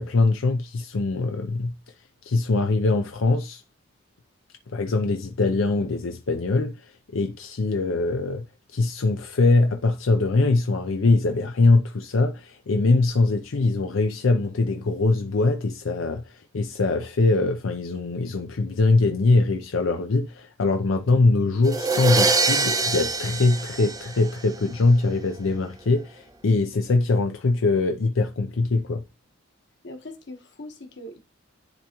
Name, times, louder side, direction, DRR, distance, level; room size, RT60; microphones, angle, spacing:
voice 1, 0.0-1.8 2.2-3.6 4.7-8.5 8.7-29.0, left 3 dB, 80° left, 0.6 m, -22 dB
sound 1, 21.7-24.6, right 3 dB, 20° right, 0.6 m, -24 dB
voice 2, 29.8-31.2, left 1 dB, 60° left, 1.2 m, -40 dB
10.5 x 3.5 x 3.0 m
head